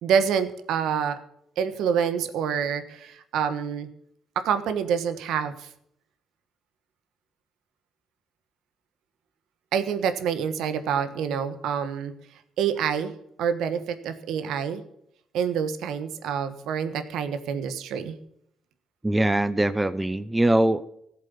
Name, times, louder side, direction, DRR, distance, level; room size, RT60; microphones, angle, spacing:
voice 1, 0.0-1.2 1.6-3.9 4.3-5.7 9.7-12.1 12.6-13.1 13.4-14.8 15.3-18.2, right 7 dB, 85° right, 10 dB, 1.3 m, -27 dB
voice 2, 19.0-20.9, right 1 dB, 10° right, 15 dB, 0.7 m, -22 dB
14.0 x 7.7 x 8.4 m, 0.72 s
cardioid pair, 90°, 0 cm